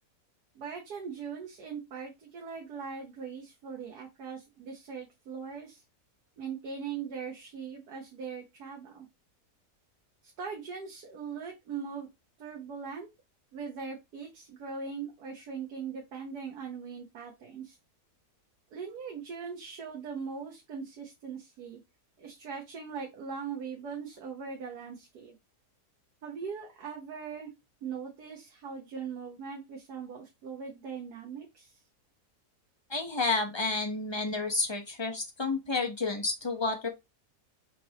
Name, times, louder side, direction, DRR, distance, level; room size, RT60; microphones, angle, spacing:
voice 1, 0.5-5.8 6.4-9.1 10.2-12.1 12.4-13.1 13.5-17.8 18.7-21.8 22.2-25.3 26.2-27.5 27.8-31.8, right 6 dB, 75° right, 1.5 m, -40 dB
voice 2, 32.9-36.9, left 3 dB, 30° left, 0.5 m, -30 dB
5.1 x 3.3 x 2.8 m
omnidirectional pair, 1.7 m